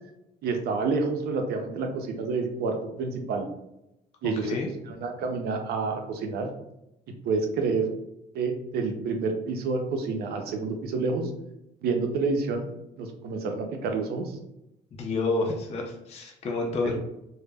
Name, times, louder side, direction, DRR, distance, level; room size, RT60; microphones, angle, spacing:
voice 1, 0.4-3.5 4.2-4.6 4.9-6.5 7.2-7.9 8.3-11.3 11.8-12.6 13.0-14.3 16.8-17.0, right 4 dB, 70° right, 4 dB, 0.5 m, -28 dB
voice 2, 14.9-16.9, left 3 dB, 40° left, 0 dB, 0.4 m, -29 dB
2.1 x 2.0 x 3.3 m, 0.85 s
cardioid pair, 110°, 17 cm